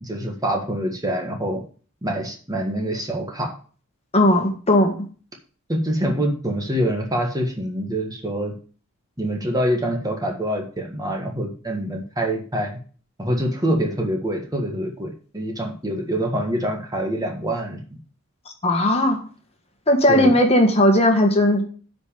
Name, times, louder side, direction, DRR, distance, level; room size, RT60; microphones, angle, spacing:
voice 1, 0.0-1.6 2.0-3.5 5.7-8.5 9.2-12.8 13.2-17.8 20.1-20.3, right 1 dB, 15° right, 2 dB, 1.5 m, -25 dB
voice 2, 4.1-4.9 18.6-19.2 19.9-21.6, left 1 dB, 30° left, 3 dB, 1.5 m, -17 dB
8.2 x 5.2 x 6.8 m, 0.39 s
head